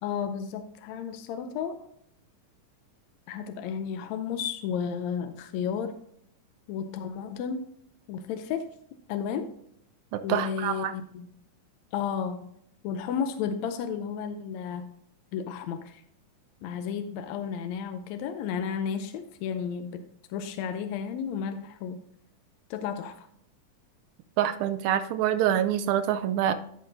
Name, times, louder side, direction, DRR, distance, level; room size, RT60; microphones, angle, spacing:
voice 1, 0.0-1.9 3.3-5.9 6.7-7.7 8.1-8.7 9.1-9.5 10.2-11.3 11.9-12.5 12.8-14.9 15.3-16.0 16.6-22.0 22.7-23.3, left 7 dB, 80° left, 8 dB, 1.7 m, -33 dB
voice 2, 10.1-10.9 24.4-26.5, right 10 dB, 75° right, 10 dB, 1.8 m, -26 dB
14.5 x 5.7 x 2.6 m, 0.70 s
omnidirectional pair, 3.7 m